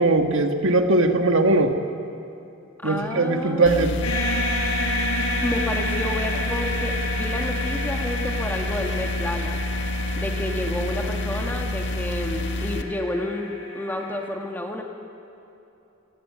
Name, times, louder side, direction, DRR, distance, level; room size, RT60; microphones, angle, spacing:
voice 1, 0.0-1.8 2.8-4.0, right 2 dB, 65° right, 5 dB, 1.8 m, -20 dB
voice 2, 2.8-4.0 5.4-9.6 10.2-14.8, left 1 dB, 10° left, 2 dB, 2.3 m, -30 dB
sound 1, 3.7-12.8, left 1 dB, 60° left, 1.8 m, -28 dB
sound 2, 4.0-14.3, left 1 dB, 85° left, 7.4 m, -31 dB
28.5 x 17.0 x 9.8 m, 2.8 s
head